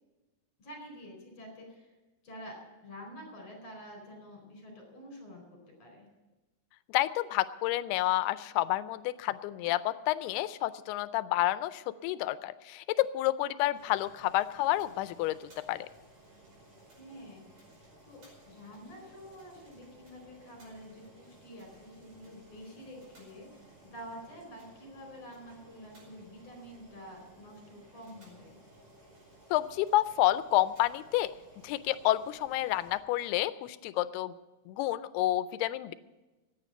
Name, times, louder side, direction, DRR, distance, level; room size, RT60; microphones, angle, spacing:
voice 1, 0.6-1.9 2.2-2.6 2.8-6.1 17.0-28.6, equal, 40° left, 1 dB, 5.4 m, -48 dB
voice 2, 6.9-15.9 29.5-31.3 31.6-34.3 34.7-35.9, left 15 dB, 85° left, 15 dB, 2.6 m, -29 dB
Boiling, 13.7-33.0, right 1 dB, 45° right, 6.5 m, -58 dB
15.0 x 9.7 x 7.8 m, 1.1 s
omnidirectional pair, 4.5 m